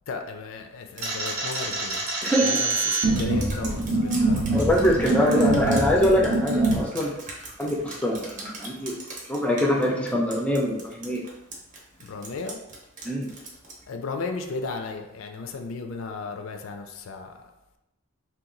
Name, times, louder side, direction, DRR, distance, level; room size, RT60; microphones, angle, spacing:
voice 1, 0.1-2.0 2.4-4.7 5.0-5.7 12.0-12.6 13.9-17.4, left 4 dB, 70° left, 5 dB, 0.4 m, -35 dB
Drip, 1.0-13.9, right 2 dB, 35° right, 0.7 m, -41 dB
sound 1, 1.0-6.8, right 2 dB, 90° right, 0.7 m, -25 dB
voice 2, 2.2-2.6 4.5-7.2 7.6-8.3 8.6-8.9 9.3-11.2 13.0-13.3, equal, 5° left, -1 dB, 0.4 m, -23 dB
2.9 x 2.2 x 3.8 m, 0.91 s
head